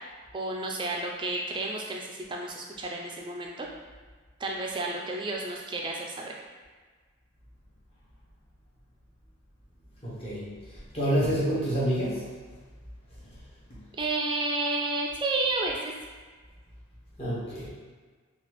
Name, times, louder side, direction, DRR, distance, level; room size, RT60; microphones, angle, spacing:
voice 1, 0.3-3.7 4.4-6.3 13.9-15.9, right 2 dB, 20° right, 0 dB, 0.3 m, -31 dB
voice 2, 10.0-10.5 10.9-12.3 17.2-17.7, right 1 dB, 25° left, -9 dB, 1.0 m, -27 dB
3.9 x 2.4 x 3.0 m, 1.5 s
head